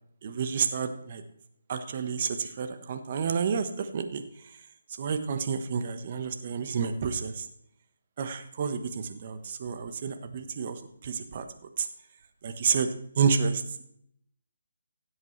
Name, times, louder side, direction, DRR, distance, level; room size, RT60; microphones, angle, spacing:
voice 1, 0.2-1.2 1.7-4.2 5.0-7.5 8.2-11.5 11.8-11.9 12.4-12.9 13.2-13.8, right 6 dB, 40° right, 8 dB, 1.1 m, -30 dB
16.0 x 8.0 x 3.2 m, 0.71 s
figure-of-eight pair, 150°, 0 cm